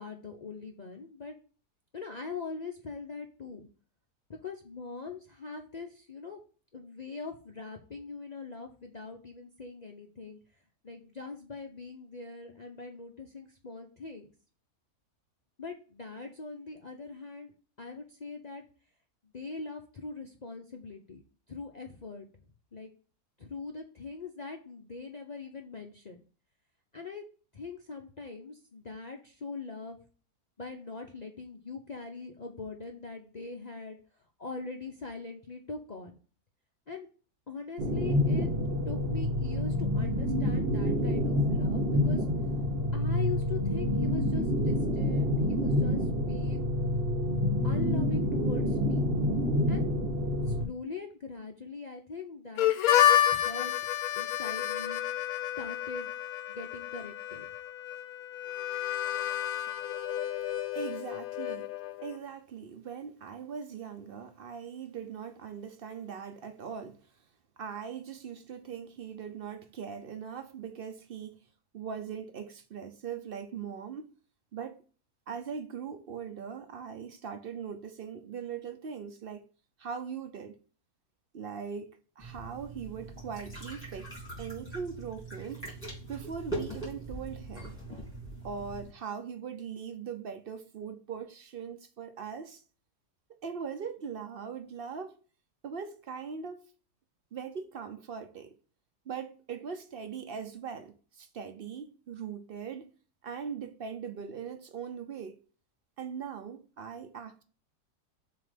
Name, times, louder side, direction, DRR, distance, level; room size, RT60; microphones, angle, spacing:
voice 1, 0.0-1.3 1.9-3.7 4.4-6.4 6.7-10.4 10.8-14.3 15.6-17.5 17.8-18.6 19.3-21.2 21.5-22.3 22.7-22.9 23.4-26.2 26.9-27.2 27.5-30.0 30.6-34.0 34.4-36.2 36.9-37.1 37.5-38.5 38.9-42.2 42.9-46.7 47.6-49.1 49.7-49.8 50.5-52.7 53.3-53.7 54.1-55.0 55.6-56.1 56.5-57.4, left 4 dB, 50° left, 0.5 m, -42 dB
sound 1, 37.8-50.7, left 1 dB, 45° right, 1.0 m, -28 dB
Harmonica, 52.6-62.2, left 11 dB, 70° left, 1.0 m, -30 dB
voice 2, 60.7-61.7 62.0-67.0 67.6-71.4 71.7-74.1 74.5-74.8 75.3-79.5 79.8-80.6 81.3-85.6 86.1-87.7 88.4-92.6 93.4-95.2 95.6-96.7 97.3-98.5 99.1-102.9 103.2-105.4 106.0-107.4, right 6 dB, 60° right, 0.6 m, -40 dB
sound 2, 82.2-88.9, right 2 dB, 5° left, 3.3 m, -41 dB
7.4 x 2.9 x 5.1 m
omnidirectional pair, 1.7 m